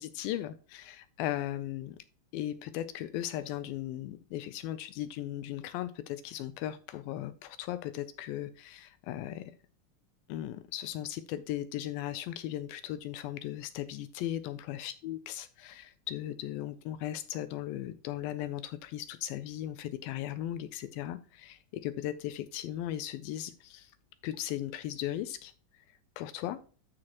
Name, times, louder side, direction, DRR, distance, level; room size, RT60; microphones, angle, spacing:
voice 1, 0.0-2.0 2.3-9.4 10.3-23.9 24.2-25.5 26.2-26.6, left 13 dB, 80° left, 12 dB, 2.2 m, -37 dB
12.5 x 4.8 x 2.9 m, 0.38 s
omnidirectional pair, 4.6 m